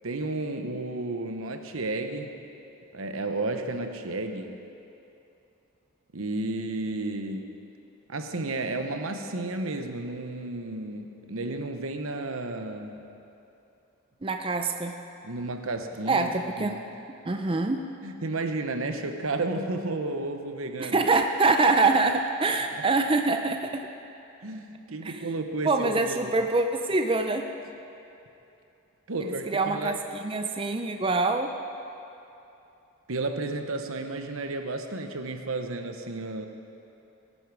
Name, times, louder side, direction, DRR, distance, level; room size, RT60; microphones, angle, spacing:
voice 1, 0.0-2.4 2.9-4.6 6.1-7.5 8.1-13.1 15.2-16.3 16.6-16.8 18.0-21.0 24.4-26.4 29.1-30.0 33.1-36.5, right 2 dB, 80° right, 6 dB, 1.0 m, -32 dB
voice 2, 14.2-15.0 16.1-16.8 17.3-17.9 20.8-23.9 25.0-25.2 25.6-27.5 29.5-30.0 30.2-31.5, right 3 dB, 25° right, 5 dB, 0.5 m, -25 dB
18.0 x 11.0 x 4.8 m, 2.8 s
head